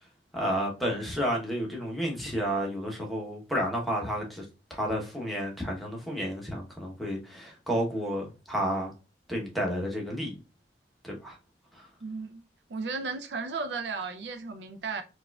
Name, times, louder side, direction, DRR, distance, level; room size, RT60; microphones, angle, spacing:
voice 1, 0.3-4.4 4.7-8.9 9.3-10.4 11.0-11.4 11.7-11.9, equal, ahead, 0.8 m, -31 dB
voice 2, 12.0-12.4 12.7-15.0, right 4 dB, 70° right, 0.5 m, -34 dB
4.3 x 2.4 x 2.2 m
head